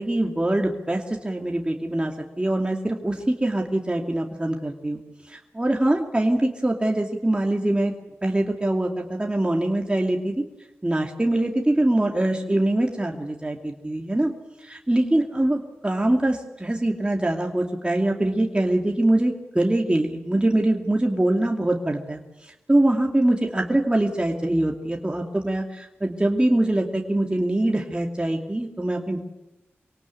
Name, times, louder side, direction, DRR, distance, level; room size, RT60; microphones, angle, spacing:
voice 1, 0.0-5.0 5.3-7.9 8.2-10.4 10.8-14.3 14.6-22.2 22.7-29.2, right 1 dB, 20° right, 1 dB, 2.7 m, -23 dB
25.0 x 18.0 x 8.5 m, 0.94 s
cardioid pair, 45°, 5 cm